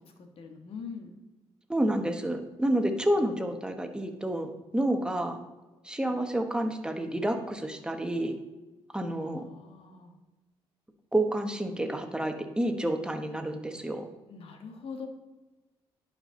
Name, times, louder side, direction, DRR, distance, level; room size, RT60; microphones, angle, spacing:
voice 1, 0.2-1.1 9.1-10.1 14.3-15.1, left 5 dB, 60° left, 5 dB, 1.4 m, -43 dB
voice 2, 1.7-5.4 5.8-8.3 8.9-9.4 11.1-14.1, right 1 dB, 10° right, 5 dB, 1.1 m, -29 dB
11.0 x 5.1 x 3.8 m, 1.2 s
cardioid pair, 85°, 11 cm